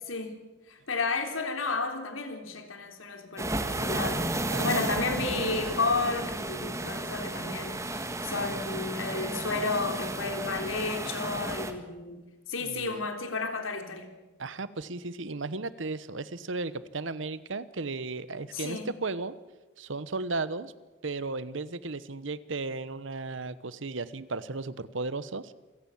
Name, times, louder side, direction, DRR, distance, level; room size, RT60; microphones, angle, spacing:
voice 1, 0.1-0.4 0.7-12.2 12.5-14.1 18.5-18.9, left 3 dB, 85° left, 6 dB, 3.5 m, -32 dB
sound 1, 3.4-11.7, right 2 dB, 15° right, 1.6 m, -33 dB
voice 2, 4.5-5.1 12.6-13.0 14.4-19.3 19.8-20.7 21.0-25.5, right 3 dB, 65° right, 16 dB, 1.0 m, -35 dB
27.5 x 17.0 x 7.2 m, 1.1 s
head